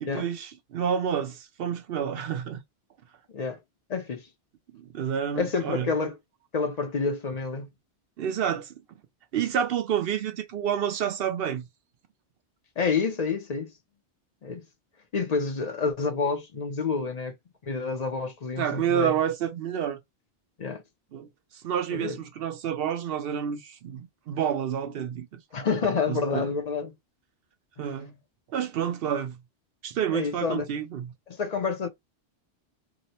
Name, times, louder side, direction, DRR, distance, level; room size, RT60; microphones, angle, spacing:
voice 1, 0.0-2.6 4.7-5.9 8.2-8.8 9.3-11.7 18.6-20.0 21.1-25.4 26.1-26.5 27.8-28.2 28.5-29.4 29.8-31.1, right 8 dB, 65° right, 0.7 m, -29 dB
voice 2, 3.3-3.6 3.9-4.3 5.4-6.2 6.5-7.7 12.8-13.7 14.4-14.7 15.1-17.4 17.6-19.1 20.6-20.8 21.9-22.2 25.5-27.0 27.8-27.9 30.1-30.7 31.3-31.9, left 4 dB, 45° left, 0.5 m, -28 dB
2.9 x 2.0 x 4.0 m
omnidirectional pair, 1.2 m